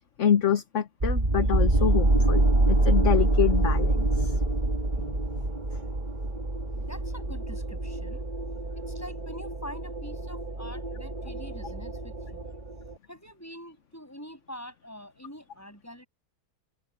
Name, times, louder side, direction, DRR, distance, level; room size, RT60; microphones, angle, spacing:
voice 1, 0.2-4.4 5.0-5.4, left 9 dB, 50° left, 1.2 m, -27 dB
sound 1, 1.0-12.9, right 2 dB, 25° right, 2.3 m, -26 dB
voice 2, 6.7-8.3 8.9-12.5 13.1-16.1, equal, 10° left, 7.5 m, -45 dB
omnidirectional pair, 1.8 m